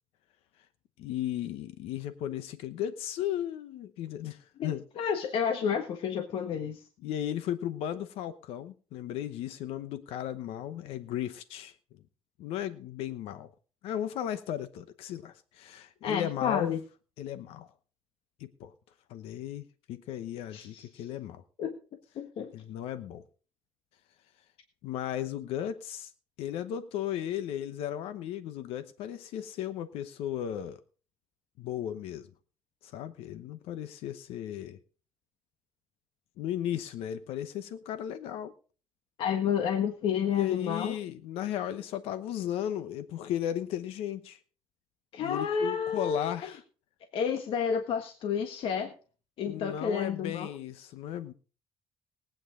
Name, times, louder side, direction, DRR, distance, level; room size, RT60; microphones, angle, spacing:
voice 1, 1.0-4.8 7.0-11.8 12.4-13.5 13.8-16.7 17.2-17.7 18.4-18.7 19.1-21.4 22.5-23.2 24.8-26.1 26.4-30.8 31.6-32.3 32.8-34.8 36.4-38.5 40.2-44.4 45.2-46.6 49.5-51.3, left 11 dB, 90° left, 12 dB, 1.0 m, -35 dB
voice 2, 4.6-6.8 16.0-16.8 20.5-21.1 21.6-21.7 22.1-22.5 39.2-40.9 45.1-46.4 47.1-48.9 49.4-50.5, left 7 dB, 65° left, 6 dB, 1.6 m, -30 dB
19.5 x 9.1 x 3.8 m, 0.37 s
cardioid pair, 115°, 10 cm